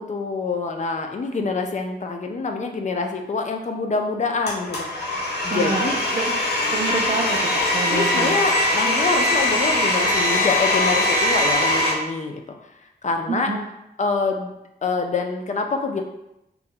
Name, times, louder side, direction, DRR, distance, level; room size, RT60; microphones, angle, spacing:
voice 1, 0.0-4.9 5.4-6.0 7.9-12.4 13.0-13.5 14.0-14.5 14.8-16.0, left 4 dB, 45° left, 4 dB, 0.4 m, -25 dB
Domestic sounds home sounds, 4.5-11.9, left 1 dB, 75° left, 0.9 m, -21 dB
voice 2, 5.5-6.3 6.7-8.4 13.3-13.6, right 4 dB, 50° right, -3 dB, 0.4 m, -27 dB
2.9 x 2.1 x 3.6 m, 0.86 s
wide cardioid pair, 100°, 17 cm